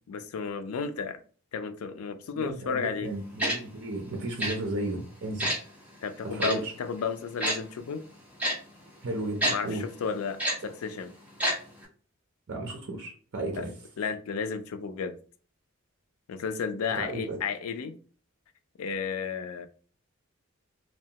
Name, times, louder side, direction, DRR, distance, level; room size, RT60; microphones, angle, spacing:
voice 1, 0.1-1.2 1.5-3.1 6.0-8.0 9.5-11.1 13.6-13.7 14.0-15.1 16.3-17.9 18.8-19.7, left 5 dB, 85° left, 0.4 m, -33 dB
voice 2, 2.4-5.5 6.2-6.7 9.0-9.8 12.5-13.7 17.0-17.4, right 2 dB, 55° right, 0.5 m, -34 dB
Tick-tock, 3.4-3.6 4.4-4.5 5.4-5.6 6.4-6.5 7.4-7.6 8.4-8.5 9.4-9.5 10.4-10.5 11.4-11.5 11.8-11.9, equal, 5° right, 0.6 m, -26 dB
2.8 x 2.1 x 2.7 m
head